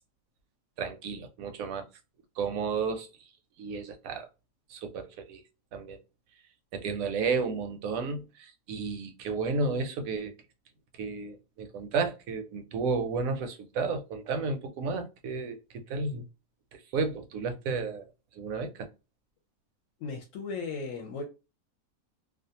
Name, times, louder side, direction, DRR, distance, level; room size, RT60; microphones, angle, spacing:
voice 1, 0.8-1.9 2.4-3.1 3.6-4.3 4.7-5.4 5.7-6.0 6.7-10.3 11.0-16.2 16.7-18.0 18.3-18.9, right 4 dB, 75° right, 1.0 m, -32 dB
voice 2, 20.0-21.2, left 4 dB, 70° left, 0.9 m, -36 dB
2.4 x 2.3 x 2.7 m
omnidirectional pair, 1.5 m